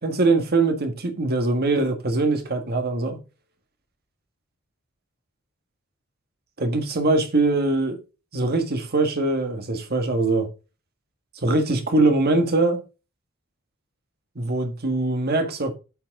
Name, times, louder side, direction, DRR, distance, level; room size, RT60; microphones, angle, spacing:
voice 1, 0.0-3.2 6.6-8.0 8.3-10.5 11.4-12.8 14.3-15.7, right 2 dB, 50° right, 1.6 m, -22 dB
8.7 x 5.8 x 3.7 m
head